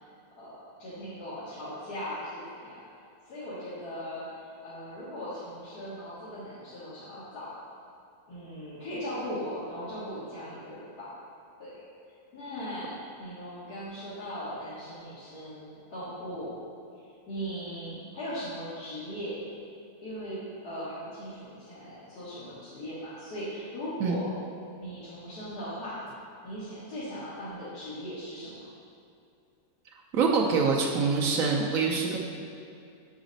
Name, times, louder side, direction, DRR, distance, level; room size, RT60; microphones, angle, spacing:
voice 1, 0.4-2.8 3.3-7.6 8.3-11.1 11.6-11.7 12.3-16.6 17.3-19.6 20.0-24.3 24.8-26.0 26.4-28.6, equal, 85° left, -11 dB, 1.9 m, -38 dB
voice 2, 30.1-32.2, right 5 dB, 70° right, -1 dB, 1.0 m, -25 dB
7.2 x 4.9 x 3.9 m, 2.5 s
omnidirectional pair, 1.6 m